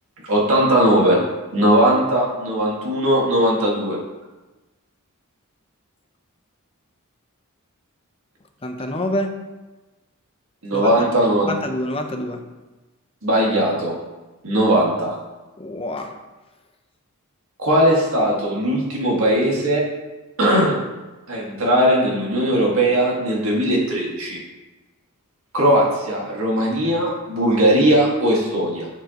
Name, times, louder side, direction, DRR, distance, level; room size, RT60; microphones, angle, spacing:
voice 1, 0.3-1.2 1.5-4.0 10.6-11.5 13.2-14.0 14.4-15.2 17.6-19.9 20.4-20.8 21.3-24.4 25.5-28.9, right 1 dB, 70° right, -2 dB, 1.9 m, -19 dB
voice 2, 8.6-9.4 10.7-11.0 11.5-12.4 15.6-16.1, left 1 dB, 25° left, 5 dB, 0.6 m, -26 dB
8.0 x 7.3 x 3.0 m, 1.1 s
head